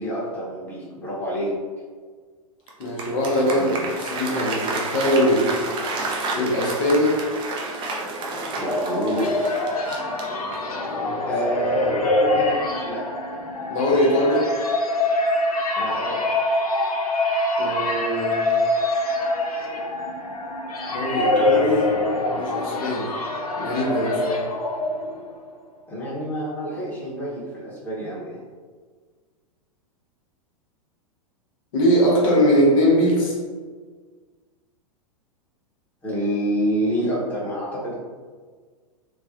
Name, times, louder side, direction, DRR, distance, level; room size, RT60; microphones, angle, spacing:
voice 1, 0.0-1.6 3.4-3.9 8.6-9.3 11.3-12.0 12.3-13.0 15.8-16.3 25.9-28.4 36.0-37.9, right 1 dB, 10° left, -8 dB, 0.9 m, -27 dB
Applause, 2.7-10.8, right 3 dB, 25° right, 0.4 m, -30 dB
voice 2, 2.8-3.7 4.1-5.5 6.3-7.1 10.3-11.2 13.7-14.4 17.6-18.5 20.9-21.9 22.3-23.1 23.6-24.5 31.7-33.3, equal, 65° left, -4 dB, 0.8 m, -21 dB
sound 1, 8.4-25.3, left 2 dB, 85° left, 0.4 m, -24 dB
3.2 x 2.1 x 2.5 m, 1.5 s
hypercardioid pair, 100°, 19 cm